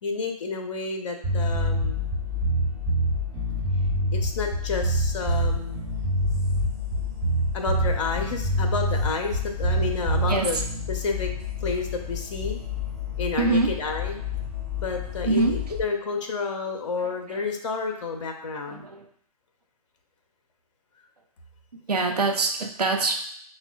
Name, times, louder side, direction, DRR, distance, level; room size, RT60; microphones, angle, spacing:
voice 1, 0.0-2.1 4.1-5.9 7.5-10.6 10.9-11.3 11.6-12.6 13.2-14.2 14.8-18.9, left 4 dB, 50° left, 3 dB, 0.5 m, -30 dB
sound 1, 1.2-15.8, left 11 dB, ahead, 0.6 m, -32 dB
sound 2, 1.2-10.8, right 2 dB, 25° right, 1.0 m, -25 dB
voice 2, 10.3-10.6 13.4-13.8 15.2-15.6 17.0-17.4 18.7-19.1 21.9-23.1, right 3 dB, 75° right, 3 dB, 0.7 m, -24 dB
5.5 x 2.2 x 2.2 m, 0.65 s
figure-of-eight pair, 130°, 20 cm